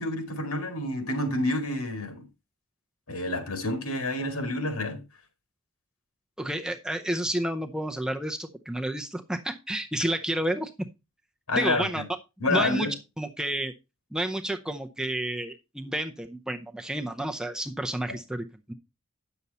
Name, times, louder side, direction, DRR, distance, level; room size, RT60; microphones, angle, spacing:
voice 1, 0.0-2.2 3.1-5.0 11.5-12.0 12.4-12.9, left 2 dB, 80° left, 2.4 m, -28 dB
voice 2, 6.4-10.7 11.5-12.0 12.5-12.9 13.2-13.7 14.1-18.7, right 1 dB, 5° right, 0.5 m, -30 dB
9.6 x 6.9 x 4.1 m
head